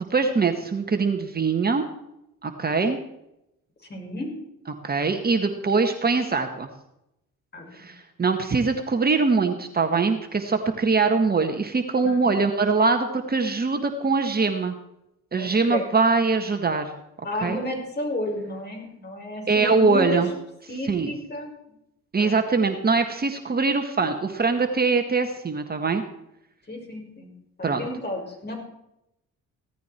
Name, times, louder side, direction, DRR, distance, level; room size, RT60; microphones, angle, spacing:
voice 1, 0.1-1.8 2.4-3.0 4.7-6.7 7.7-14.7 15.3-16.9 17.4-17.6 19.5-20.3 20.9-21.1 22.1-26.0 27.6-27.8, right 4 dB, 30° right, 5 dB, 1.7 m, -22 dB
voice 2, 3.9-4.3 7.5-7.9 12.0-12.3 15.4-15.8 17.2-20.2 20.7-21.5 22.2-22.5 26.7-27.3 27.6-28.5, left 1 dB, 35° left, 1 dB, 6.7 m, -32 dB
17.0 x 13.5 x 4.6 m, 0.84 s
cardioid pair, 90°, 30 cm